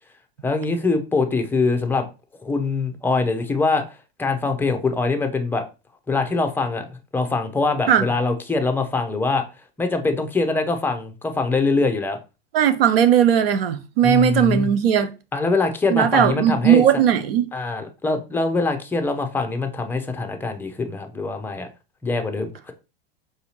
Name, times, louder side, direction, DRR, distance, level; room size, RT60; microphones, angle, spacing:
voice 1, 0.4-2.1 2.4-3.8 4.2-5.6 6.1-9.4 9.8-12.2 14.0-14.7 15.3-16.8 17.5-21.7 22.0-22.7, left 3 dB, 5° left, 0.6 m, -23 dB
voice 2, 12.5-15.1 15.9-17.5, right 9 dB, 75° right, 0.7 m, -17 dB
4.9 x 2.7 x 2.8 m
hypercardioid pair, 100°, 29 cm